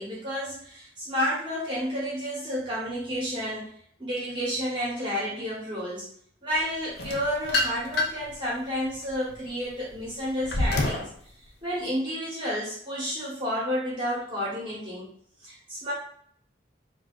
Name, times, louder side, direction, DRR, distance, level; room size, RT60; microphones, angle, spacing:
voice 1, 0.0-3.7 4.0-6.1 6.4-11.1 11.6-15.1 15.4-15.9, equal, 25° right, -6 dB, 0.9 m, -31 dB
sound 1, 7.0-8.3 8.9-11.1, left 2 dB, 55° left, 0.5 m, -28 dB
4.6 x 2.3 x 2.4 m, 0.63 s
head